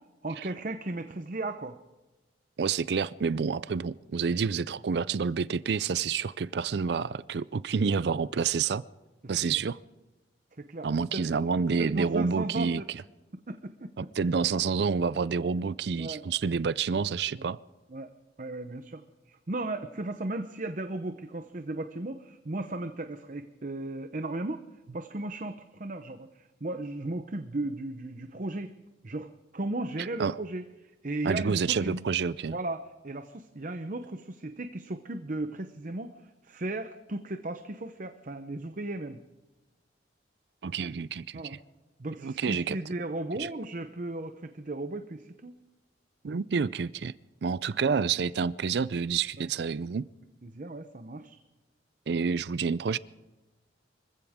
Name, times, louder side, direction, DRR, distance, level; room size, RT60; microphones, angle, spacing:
voice 1, 0.2-1.8 3.8-3.9 10.6-11.2 11.8-12.9 13.5-14.1 16.0-16.2 17.4-17.5 17.9-18.1 18.4-24.6 24.9-28.7 29.0-32.0 32.5-39.2 41.3-41.6 42.0-45.5 49.4-49.5 50.4-51.4, right 2 dB, 45° right, 0.8 m, -36 dB
voice 2, 2.6-8.8 9.3-9.8 10.8-13.0 14.2-17.6 30.0-30.4 31.2-32.5 40.6-41.6 42.2-42.8 43.4-43.5 46.2-47.1 47.4-50.1 52.1-53.0, right 5 dB, 65° right, 0.4 m, -28 dB
25.5 x 15.0 x 3.6 m
head